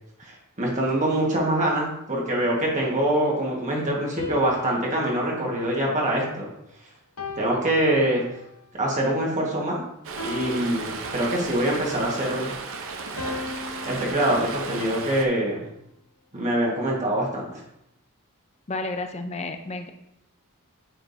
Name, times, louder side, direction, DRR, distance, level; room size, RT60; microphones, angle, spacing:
voice 1, 0.2-6.5 7.4-8.2 8.7-9.8 10.2-12.9 13.8-15.6 16.3-17.6, right 1 dB, 35° right, -3 dB, 1.5 m, -24 dB
sound 1, 4.2-6.6 7.2-8.6 10.2-11.6 13.2-15.5, left 3 dB, 90° left, 1.0 m, -39 dB
Stream, 10.0-15.3, right 4 dB, 65° right, 0.8 m, -34 dB
voice 2, 18.7-19.9, left 2 dB, 30° left, 6 dB, 0.6 m, -31 dB
8.8 x 5.0 x 2.7 m, 0.81 s
head